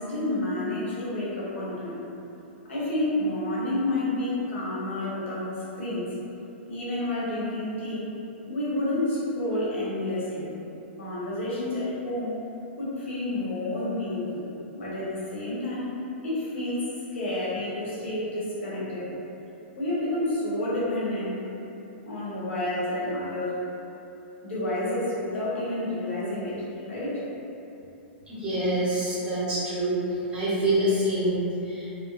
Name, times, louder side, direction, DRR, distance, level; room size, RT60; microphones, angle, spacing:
voice 1, 0.0-2.1 2.6-6.1 6.7-8.1 8.5-10.5 11.0-12.3 12.8-14.5 14.7-15.9 16.2-16.8 17.1-19.1 19.7-21.3 22.1-23.6 24.4-26.6 26.8-27.2, left 1 dB, 90° left, -8 dB, 0.9 m, -29 dB
voice 2, 28.3-32.0, right 1 dB, 15° right, -11 dB, 0.8 m, -26 dB
2.6 x 2.3 x 2.3 m, 2.9 s
hypercardioid pair, 140°, 6 cm